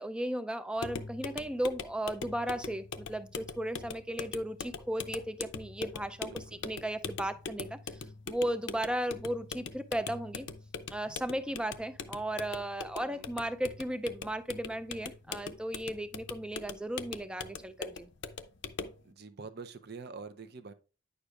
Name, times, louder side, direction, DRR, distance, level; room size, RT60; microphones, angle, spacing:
voice 1, 0.0-8.0 8.3-10.5 10.9-18.1, right 1 dB, 5° right, 0.4 m, -35 dB
sound 1, 0.8-19.0, left 5 dB, 55° left, 0.6 m, -42 dB
voice 2, 6.3-6.7 13.1-13.3 19.0-20.7, right 4 dB, 50° right, 0.6 m, -46 dB
9.8 x 6.6 x 2.4 m
head